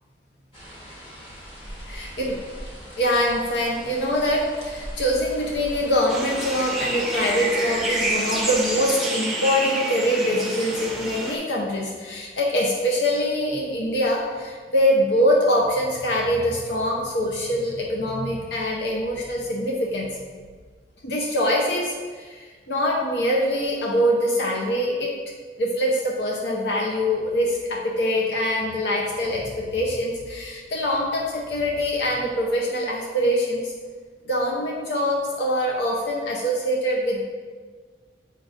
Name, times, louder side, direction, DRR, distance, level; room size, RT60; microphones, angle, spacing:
sound 1, 0.5-8.9, equal, 30° left, 1.3 m, -41 dB
voice 1, 1.8-2.3 3.0-20.2 21.0-25.1 25.6-33.7 34.3-37.2, equal, 80° left, -2 dB, 0.8 m, -24 dB
sound 2, 6.1-11.4, right 1 dB, ahead, 0.6 m, -28 dB
7.6 x 5.3 x 2.6 m, 1.5 s
head